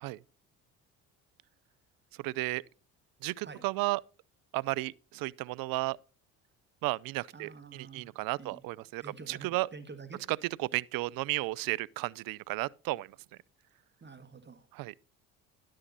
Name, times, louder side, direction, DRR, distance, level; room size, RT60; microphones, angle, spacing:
voice 1, 2.2-2.6 3.2-4.0 4.5-6.0 6.8-9.7 10.3-13.2 14.7-14.9, right 20 dB, 60° right, 0.5 m, -33 dB
voice 2, 7.3-8.1 8.4-8.6 9.0-10.2 14.0-14.6, right 4 dB, 25° right, 1.4 m, -47 dB
11.0 x 7.6 x 3.9 m
hypercardioid pair, 60°, 40 cm